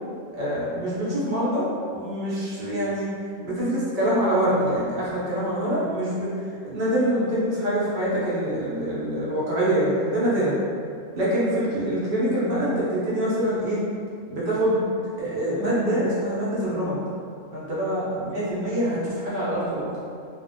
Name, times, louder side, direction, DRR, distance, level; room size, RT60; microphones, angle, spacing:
voice 1, 0.3-1.6 1.9-3.1 3.4-10.5 11.1-13.8 14.3-14.8 15.2-17.0 17.5-19.9, right 1 dB, 50° right, -9 dB, 0.6 m, -25 dB
2.5 x 2.1 x 2.6 m, 2.4 s
omnidirectional pair, 1.6 m